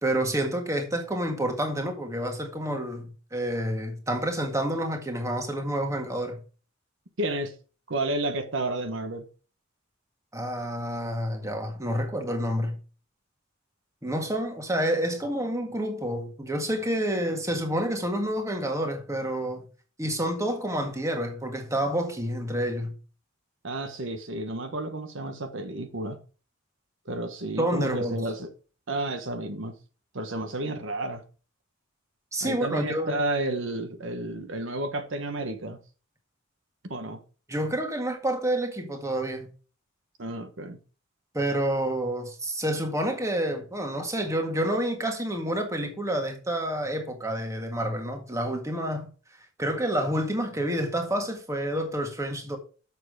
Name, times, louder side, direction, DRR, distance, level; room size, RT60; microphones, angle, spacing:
voice 1, 0.0-6.4 10.3-12.8 14.0-19.6 20.0-23.0 27.6-28.2 32.3-33.2 37.5-39.5 41.3-49.1 49.6-52.6, right 1 dB, 15° right, 1.8 m, -28 dB
voice 2, 7.2-7.5 7.9-9.3 23.6-26.2 27.0-28.5 28.9-29.8 30.1-31.2 32.4-35.8 36.9-37.2 40.2-40.8, right 2 dB, 65° right, 1.2 m, -31 dB
7.4 x 6.8 x 4.9 m
head